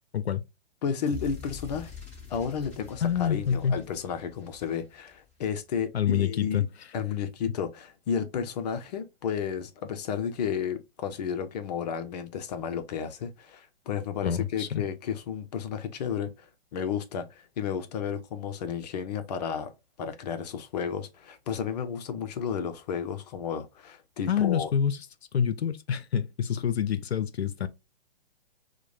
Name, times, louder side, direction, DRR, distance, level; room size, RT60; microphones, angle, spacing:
voice 1, 0.8-1.9 2.3-6.6 6.9-16.5 16.7-19.7 20.0-24.7, left 7 dB, 40° left, 0.6 m, -32 dB
sound 1, 1.1-5.3, left 6 dB, 5° left, 1.6 m, -45 dB
voice 2, 3.0-3.8 5.9-6.7 14.2-14.8 24.3-25.0 25.3-27.7, left 8 dB, 90° left, 0.5 m, -27 dB
4.5 x 2.2 x 2.5 m
hypercardioid pair, 135°, 31 cm